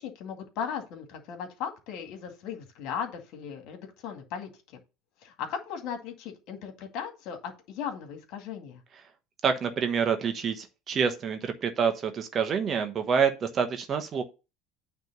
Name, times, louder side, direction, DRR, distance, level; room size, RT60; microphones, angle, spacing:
voice 1, 0.0-4.8 5.2-8.8, left 7 dB, 55° left, 5 dB, 2.1 m, -37 dB
voice 2, 9.4-14.2, right 6 dB, 35° right, 7 dB, 1.2 m, -27 dB
9.2 x 3.4 x 6.7 m, 0.29 s
hypercardioid pair, 75°, 0 cm